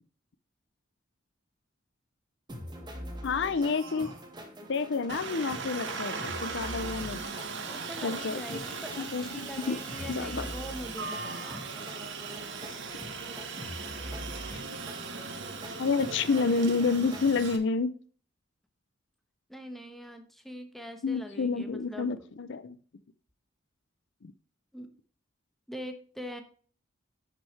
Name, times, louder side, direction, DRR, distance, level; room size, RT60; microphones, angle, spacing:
sound 1, 2.5-17.3, equal, 20° right, 1.8 m, -44 dB
voice 1, 3.2-4.1 4.7-7.3 8.0-8.6 9.0-9.8 10.1-10.5 14.5-14.6 15.8-17.9 21.0-22.8 24.2-24.3, left 4 dB, 65° left, 13 dB, 0.6 m, -29 dB
sound 2, 3.5-4.3 5.0-6.2 6.7-8.0 8.5-9.2 9.7-10.4 11.0-12.0, right 3 dB, 90° right, 1.7 m, -51 dB
Aircraft, 5.1-17.6, right 4 dB, 65° right, 1.5 m, -39 dB
voice 2, 7.6-11.6 19.5-22.1 24.7-24.9 25.7-26.4, equal, ahead, 6 dB, 1.2 m, -43 dB
10.0 x 6.0 x 3.3 m, 0.43 s
head